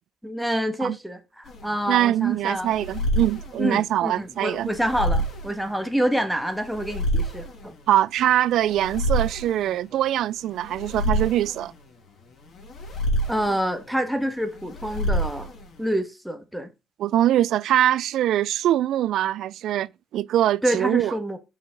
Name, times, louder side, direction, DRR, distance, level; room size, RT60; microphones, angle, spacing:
voice 1, 0.2-2.7 3.6-7.7 13.3-15.5 15.8-16.7 20.6-21.4, equal, 5° right, 1.5 m, -27 dB
sound 1, 1.4-16.0, equal, 60° left, 2.9 m, -29 dB
voice 2, 1.9-4.7 7.9-11.7 17.0-21.1, right 12 dB, 80° right, 0.3 m, -23 dB
6.0 x 5.8 x 3.7 m
cardioid pair, 90°, 0 cm